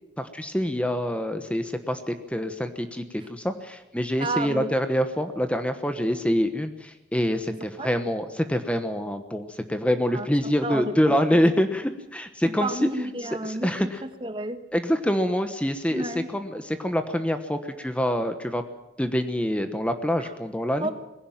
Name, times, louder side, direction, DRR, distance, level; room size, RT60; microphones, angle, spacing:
voice 1, 0.2-12.9 13.4-14.0 14.7-18.6 19.0-20.9, equal, 5° left, 8 dB, 1.1 m, -26 dB
voice 2, 4.2-4.7 7.5-7.9 10.1-10.3 10.6-11.0 11.3-11.4 12.4-14.6 15.9-16.3 20.2-20.3 20.8-20.9, right 2 dB, 30° right, 9 dB, 1.3 m, -31 dB
20.5 x 16.5 x 9.1 m, 0.95 s
head